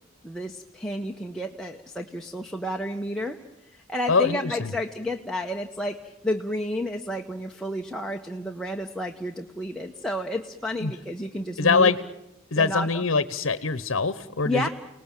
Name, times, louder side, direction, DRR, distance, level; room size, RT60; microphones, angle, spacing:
voice 1, 0.2-11.9 12.6-13.0 14.4-14.7, left 1 dB, 5° left, 1 dB, 0.9 m, -31 dB
voice 2, 4.1-4.7 10.8-10.9 11.6-12.0 12.5-14.7, left 4 dB, 70° left, 15 dB, 1.0 m, -23 dB
30.0 x 19.0 x 8.9 m, 0.93 s
head